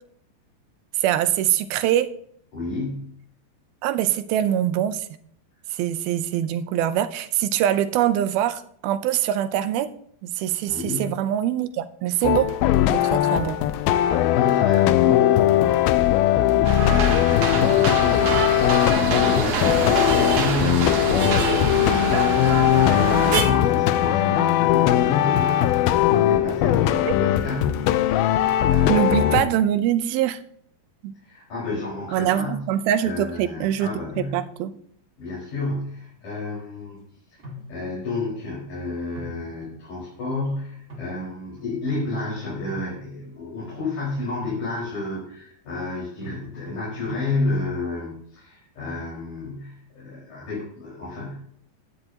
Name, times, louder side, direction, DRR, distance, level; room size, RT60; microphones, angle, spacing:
voice 1, 1.0-2.1 3.8-5.1 5.7-9.9 10.2-12.5 12.9-13.6 28.9-30.4 31.0-31.1 32.1-33.9 34.2-34.7, right 11 dB, 85° right, 12 dB, 2.6 m, -23 dB
voice 2, 2.5-3.1 10.7-11.1 14.3-16.2 16.7-29.5 31.2-32.7 33.0-34.4 35.2-37.0 37.3-37.4 37.7-51.4, left 2 dB, 55° left, -6 dB, 6.4 m, -31 dB
sound 1, 12.2-29.4, left 12 dB, 85° left, 2.5 m, -20 dB
sound 2, 16.6-23.4, right 4 dB, 60° right, 3.0 m, -25 dB
sound 3, 36.0-36.5 37.4-38.1 39.1-40.3 40.7-41.8 42.5-43.4 44.4-45.1 46.2-47.8, left 2 dB, 25° right, 1.7 m, -42 dB
15.5 x 12.5 x 2.9 m, 0.65 s
omnidirectional pair, 4.3 m